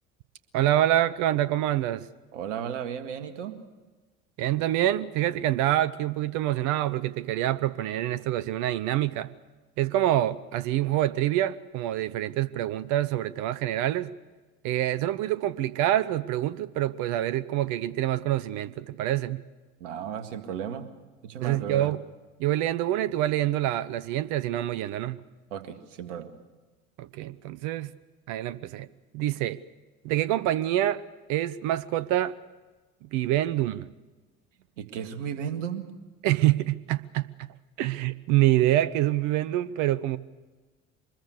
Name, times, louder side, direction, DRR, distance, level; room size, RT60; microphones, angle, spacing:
voice 1, 0.5-2.1 4.4-9.3 9.8-14.1 14.6-19.4 21.4-22.0 22.4-25.2 27.0-27.9 28.3-28.9 29.1-29.6 30.0-31.0 31.3-32.3 33.1-33.9 36.2-37.5 37.8-40.2, right 13 dB, 50° right, 17 dB, 0.9 m, -26 dB
voice 2, 2.3-3.6 19.8-20.9 21.2-21.9 25.5-26.3 34.8-35.9, right 8 dB, 65° right, 9 dB, 2.0 m, -34 dB
24.5 x 21.0 x 6.6 m, 1.3 s
figure-of-eight pair, 60°, 39 cm